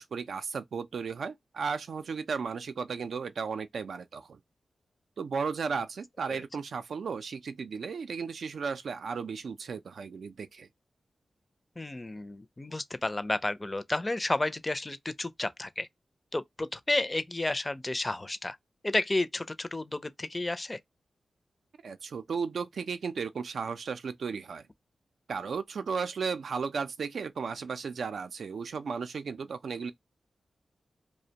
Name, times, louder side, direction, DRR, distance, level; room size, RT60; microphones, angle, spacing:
voice 1, 0.0-4.4 5.2-10.7 21.8-24.7 25.3-29.9, right 5 dB, 80° right, 0.4 m, -35 dB
voice 2, 11.8-15.9 16.3-18.6 18.8-20.8, left 2 dB, 25° left, 0.4 m, -31 dB
2.5 x 2.1 x 2.8 m
cardioid pair, 65°, 0 cm